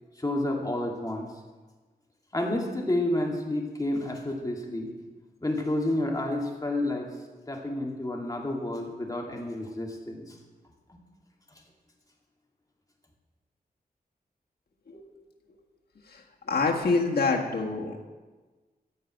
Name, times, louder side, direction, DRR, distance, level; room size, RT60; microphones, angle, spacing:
voice 1, 0.2-1.3 2.3-4.9 5.4-7.1 7.5-10.3, left 1 dB, 20° left, -1 dB, 2.4 m, -30 dB
voice 2, 16.5-18.0, left 3 dB, 75° left, -1 dB, 1.7 m, -26 dB
14.5 x 5.4 x 9.1 m, 1.3 s
wide cardioid pair, 95°, 17 cm